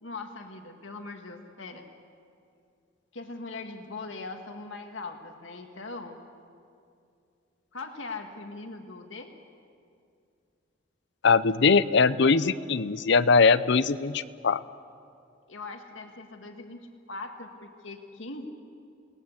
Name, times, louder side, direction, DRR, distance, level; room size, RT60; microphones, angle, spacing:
voice 1, 0.0-1.9 3.1-6.2 7.7-9.3 15.5-18.5, left 3 dB, 80° left, 4 dB, 1.8 m, -40 dB
voice 2, 11.2-14.6, left 4 dB, 65° left, 15 dB, 0.7 m, -21 dB
29.0 x 19.5 x 7.2 m, 2.5 s
head